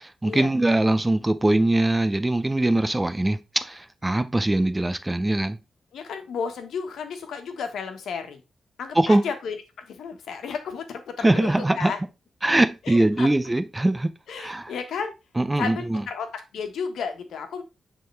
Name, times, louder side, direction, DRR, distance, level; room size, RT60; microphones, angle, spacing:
voice 1, 0.0-5.6 9.0-9.2 11.2-11.9 12.4-14.1 14.4-14.7 15.4-16.0, right 1 dB, 15° right, 0.5 m, -22 dB
voice 2, 5.9-8.4 8.8-12.0 12.8-13.3 14.3-15.1 15.6-17.6, left 6 dB, 85° left, 1.3 m, -33 dB
9.3 x 3.8 x 3.3 m
wide cardioid pair, 120°, 0 cm